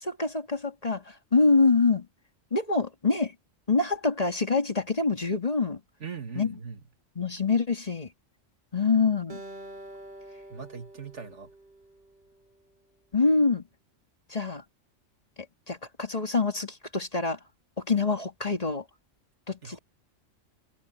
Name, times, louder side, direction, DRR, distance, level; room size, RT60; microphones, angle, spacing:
voice 1, 0.0-2.1 2.5-3.3 3.7-5.8 6.4-6.5 7.2-8.1 8.7-9.4 13.1-13.7 14.3-14.6 15.7-17.4 17.8-18.8 19.5-19.8, left 4 dB, 30° left, 1.9 m, -25 dB
voice 2, 6.0-6.8 10.5-11.5 19.6-19.8, right 6 dB, 65° right, 2.2 m, -40 dB
Acoustic guitar, 9.3-12.6, right 1 dB, 40° right, 1.5 m, -46 dB
omnidirectional pair, 1.3 m